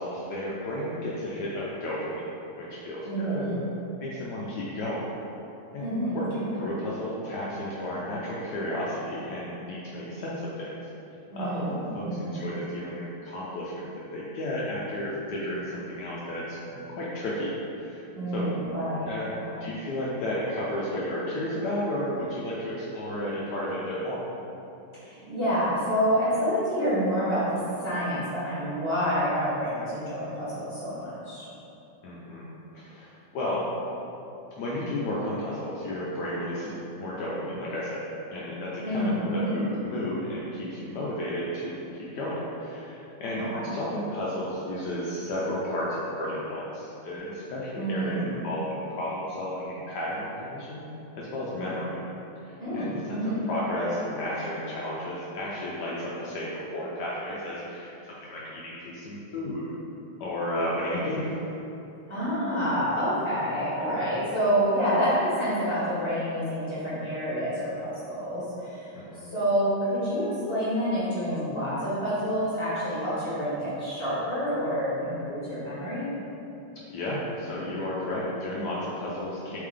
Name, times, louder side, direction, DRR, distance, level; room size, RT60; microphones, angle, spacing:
voice 1, 0.0-2.3 2.5-3.6 4.0-5.0 5.7-10.7 11.4-18.0 18.3-18.5 19.1-19.3 19.6-24.2 32.0-32.5 32.7-33.6 34.5-38.0 38.3-43.4 43.7-50.8 51.2-52.0 52.4-53.2 53.5-59.6 60.2-61.5 68.9-69.3 76.9-79.6, left 1 dB, 85° left, -6 dB, 0.9 m, -33 dB
voice 2, 3.0-3.6 5.8-6.4 11.3-12.4 18.1-19.6 25.0-31.5 38.8-39.6 43.4-43.7 47.7-48.4 52.6-53.4 62.1-68.9 69.2-76.1, equal, 15° left, -11 dB, 1.2 m, -28 dB
3.6 x 3.3 x 3.6 m, 2.9 s
omnidirectional pair, 2.4 m